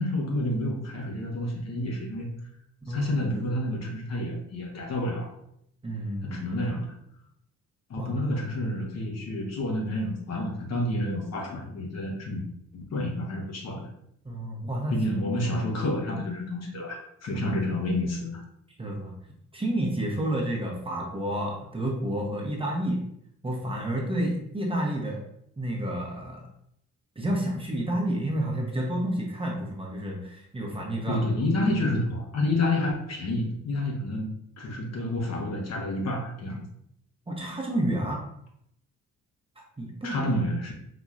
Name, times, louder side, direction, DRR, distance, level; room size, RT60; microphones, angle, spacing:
voice 1, 0.0-2.3 2.9-5.3 6.2-6.9 7.9-12.4 12.7-13.9 14.9-18.4 31.1-34.3 34.6-36.6 40.0-40.7, left 1 dB, 60° left, 0 dB, 1.1 m, -29 dB
voice 2, 2.9-3.2 5.8-6.4 8.0-8.3 14.2-14.9 17.3-17.4 18.8-19.1 19.5-23.0 23.4-25.2 25.6-26.4 27.2-31.3 31.6-31.8 37.3-38.2 39.8-40.2, right 1 dB, 20° right, -1 dB, 0.8 m, -30 dB
4.1 x 2.9 x 2.4 m, 0.73 s
cardioid pair, 90°, 30 cm